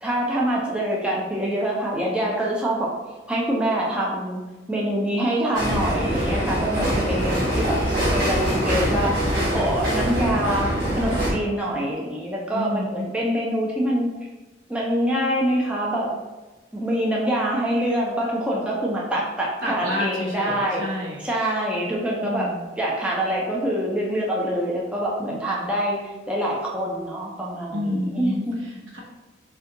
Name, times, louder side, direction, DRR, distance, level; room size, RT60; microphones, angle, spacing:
voice 1, 0.0-2.9 3.3-4.4 4.7-9.1 9.5-14.1 14.7-16.1 16.7-20.8 21.2-22.5 22.8-28.7, right 1 dB, 5° right, -4 dB, 0.4 m, -25 dB
sound 1, 5.5-11.3, equal, 50° right, 1.1 m, -23 dB
voice 2, 12.5-13.0 19.6-21.2 22.2-22.6 27.7-29.0, left 1 dB, 85° right, -3 dB, 0.8 m, -29 dB
2.7 x 2.2 x 3.6 m, 1.2 s
head